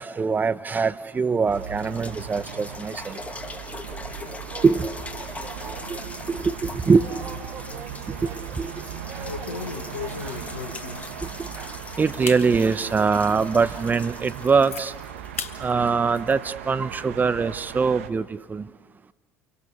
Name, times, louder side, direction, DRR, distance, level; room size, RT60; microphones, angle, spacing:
voice 1, 0.0-3.2 4.6-4.9 5.9-6.0 6.3-7.1 8.6-8.7 12.0-14.9 15.6-18.2 18.5-18.6, right 5 dB, 25° right, 1.0 m, -22 dB
sound 1, 0.9-1.0 1.4-17.2 17.8-17.9, left 3 dB, 20° left, 1.8 m, -42 dB
sound 2, 1.5-18.1, right 9 dB, 80° right, 1.2 m, -38 dB
voice 2, 4.5-4.8 5.2-6.1 6.6-10.6, right 4 dB, 40° right, 4.6 m, -43 dB
sound 3, 7.5-8.1 8.4-8.7 9.2-11.3 11.8-11.9 12.2-12.5 13.0-13.1 13.6-13.7 14.0-14.8 15.4-15.5 15.9-16.9, left 6 dB, 90° left, 1.4 m, -36 dB
30.0 x 24.0 x 7.0 m
hypercardioid pair, 70°, 7 cm